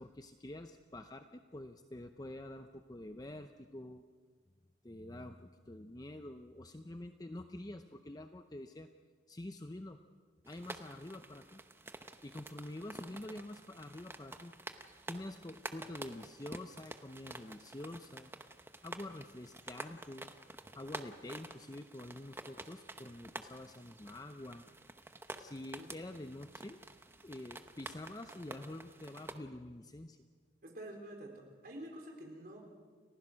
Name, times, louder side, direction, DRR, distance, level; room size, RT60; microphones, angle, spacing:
voice 1, 0.0-4.0 4.8-8.9 9.3-10.0 10.5-11.6 12.2-18.3 18.8-20.3 20.7-24.6 25.4-26.8 27.2-30.2, left 1 dB, 20° left, 8 dB, 0.6 m, -47 dB
sound 1, 10.4-29.4, right 2 dB, 15° right, 0.8 m, -50 dB
voice 2, 30.6-32.6, right 1 dB, 55° right, 1 dB, 4.4 m, -48 dB
29.5 x 15.5 x 6.3 m, 1.5 s
head